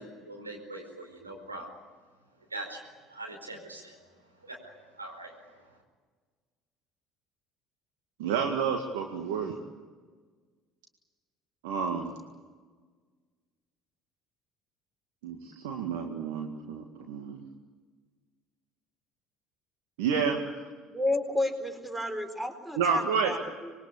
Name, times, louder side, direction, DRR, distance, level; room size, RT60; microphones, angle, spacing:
voice 1, 0.0-1.7 2.5-2.8 3.1-4.0 4.4-5.8, right 2 dB, 90° right, 1 dB, 4.8 m, -42 dB
voice 2, 8.2-9.6 11.6-12.2 15.2-17.5 20.0-20.4 22.8-23.4, right 6 dB, 70° right, 3 dB, 2.0 m, -30 dB
voice 3, 20.9-23.7, left 1 dB, 5° right, 7 dB, 4.3 m, -32 dB
25.5 x 22.5 x 8.7 m, 1.5 s
figure-of-eight pair, 60°, 0 cm